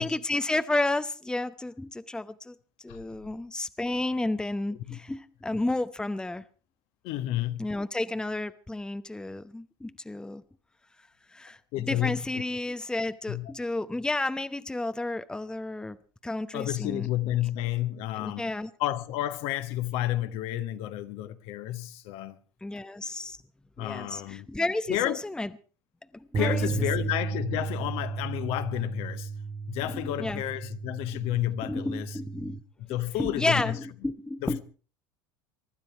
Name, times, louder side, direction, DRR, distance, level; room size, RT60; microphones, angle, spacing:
voice 1, 0.0-2.5 2.8-6.4 7.6-10.4 11.3-11.6 11.9-16.0 16.2-17.1 18.2-18.7 22.6-23.4 23.8-25.5 26.1-26.7 29.9-30.4 31.6-32.6 33.2-34.6, left 2 dB, 5° left, 0.9 m, -31 dB
voice 2, 7.0-7.7 11.7-12.4 13.3-13.5 16.5-18.5 18.8-22.4 23.8-24.5 24.9-25.2 26.3-29.3 29.7-32.2 32.9-33.8 34.4-34.6, left 14 dB, 60° left, 1.5 m, -31 dB
sound 1, 26.3-32.6, right 5 dB, 35° right, 1.3 m, -34 dB
23.5 x 12.5 x 4.6 m
hypercardioid pair, 80°, 11 cm